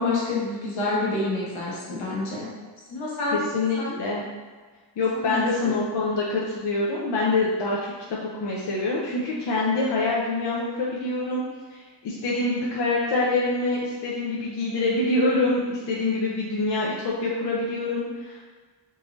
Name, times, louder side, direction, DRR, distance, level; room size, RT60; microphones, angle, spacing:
voice 1, 0.0-2.5 2.9-3.4 3.8-4.0 5.1-5.7, left 3 dB, 90° left, -5 dB, 1.2 m, -28 dB
voice 2, 3.3-4.3 5.0-11.4 11.7-18.4, left 2 dB, 65° left, -5 dB, 0.7 m, -25 dB
3.8 x 2.5 x 3.0 m, 1.4 s
wide cardioid pair, 130°, 45 cm